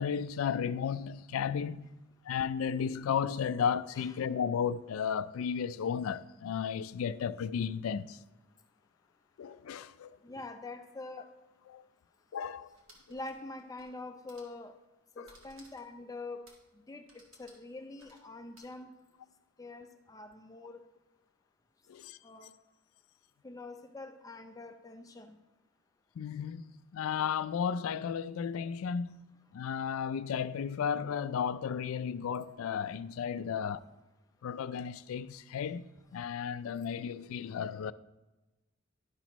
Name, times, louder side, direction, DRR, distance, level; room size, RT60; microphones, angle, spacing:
voice 1, 0.0-1.9 2.3-8.2 9.4-10.2 11.7-11.8 12.3-12.7 15.2-15.3 21.9-22.2 26.2-29.2 29.5-33.8 34.4-35.8 36.1-37.9, left 7 dB, 85° left, 0.3 m, -34 dB
voice 2, 10.2-11.2 13.1-14.7 15.2-16.4 16.9-17.0 17.4-19.0 19.6-20.8 22.2-22.5 23.4-25.4 33.4-33.5, left 2 dB, 15° left, 0.5 m, -45 dB
sound 1, 12.7-14.0 14.2-14.6 15.2-16.0 16.4-16.7 17.1-18.7, right 2 dB, 70° right, 1.9 m, -60 dB
11.5 x 6.1 x 3.0 m
head